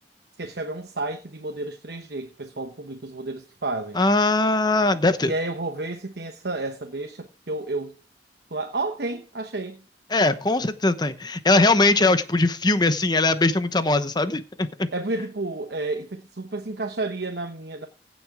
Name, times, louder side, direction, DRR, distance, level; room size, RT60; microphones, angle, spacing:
voice 1, 0.4-4.0 5.2-8.0 8.5-9.8 14.9-17.9, right 2 dB, 65° right, 1.1 m, -31 dB
voice 2, 4.0-5.3 10.1-14.9, left 2 dB, 25° left, 0.9 m, -21 dB
16.0 x 6.4 x 4.9 m
head